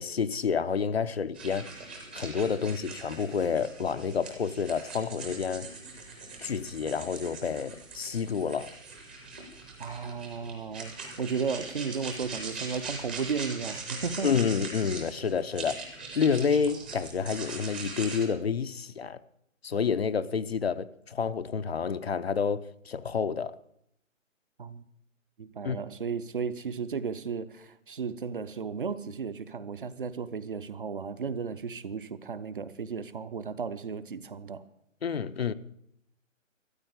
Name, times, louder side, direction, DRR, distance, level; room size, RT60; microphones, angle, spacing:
voice 1, 0.0-1.7 2.1-5.7 6.4-8.7 14.2-19.2 19.6-23.6 25.6-25.8 35.0-35.5, left 6 dB, 50° left, 0.6 m, -29 dB
sound 1, 1.3-18.2, right 4 dB, 10° right, 0.7 m, -42 dB
voice 2, 9.8-14.3 24.6-24.8 25.4-34.6, right 5 dB, 40° right, 0.7 m, -34 dB
13.5 x 8.9 x 8.0 m
figure-of-eight pair, 155°, 40 cm